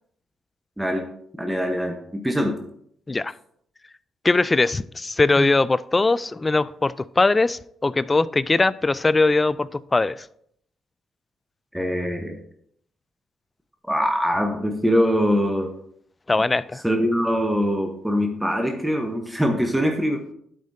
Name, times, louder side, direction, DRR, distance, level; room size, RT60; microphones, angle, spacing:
voice 1, 1.3-2.6 5.4-5.5 11.7-12.4 13.9-15.7 16.8-20.2, equal, 5° right, 1.0 m, -23 dB
voice 2, 4.2-10.2 16.3-16.8, left 3 dB, 20° left, 0.3 m, -21 dB
12.0 x 5.1 x 2.7 m
cardioid pair, 90°, 0 cm